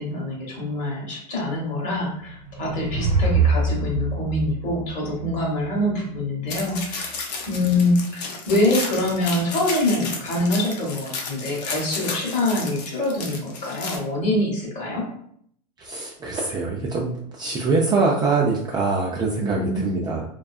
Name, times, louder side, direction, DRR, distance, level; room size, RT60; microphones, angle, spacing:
voice 1, 0.0-7.1 7.5-15.1 19.4-20.1, left 1 dB, 35° left, -2 dB, 1.0 m, -25 dB
sound 1, 2.1-5.6, right 3 dB, 80° right, 0.6 m, -24 dB
sound 2, 6.5-14.0, left 4 dB, 80° left, 0.7 m, -33 dB
voice 2, 15.8-17.1 17.4-20.2, right 4 dB, 20° right, -3 dB, 0.4 m, -23 dB
2.5 x 2.3 x 2.3 m, 0.66 s
supercardioid pair, 120°, 21 cm